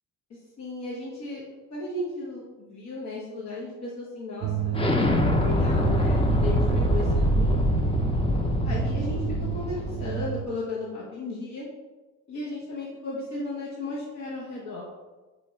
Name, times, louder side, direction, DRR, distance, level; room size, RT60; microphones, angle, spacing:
voice 1, 0.3-1.4 1.7-4.8 5.4-7.6 8.6-11.7 12.3-14.9, left 2 dB, 65° left, -5 dB, 1.1 m, -35 dB
sound 1, 4.4-10.4, right 11 dB, 65° right, 0.5 m, -31 dB
Explosion, 4.7-10.3, left 1 dB, 20° left, 0.5 m, -24 dB
4.3 x 2.9 x 4.3 m, 1.2 s
cardioid pair, 90°, 30 cm